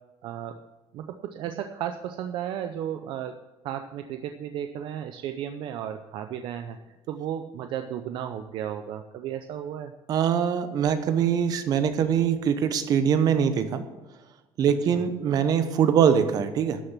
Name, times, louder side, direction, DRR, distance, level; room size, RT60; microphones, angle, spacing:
voice 1, 0.2-0.6 0.9-3.4 3.6-6.8 7.1-9.9 14.9-15.0, right 10 dB, 60° right, 7 dB, 0.6 m, -34 dB
voice 2, 10.1-13.8 14.6-16.8, right 8 dB, 40° right, 10 dB, 0.9 m, -23 dB
12.0 x 6.7 x 7.3 m, 1.1 s
cardioid pair, 180°, 10 cm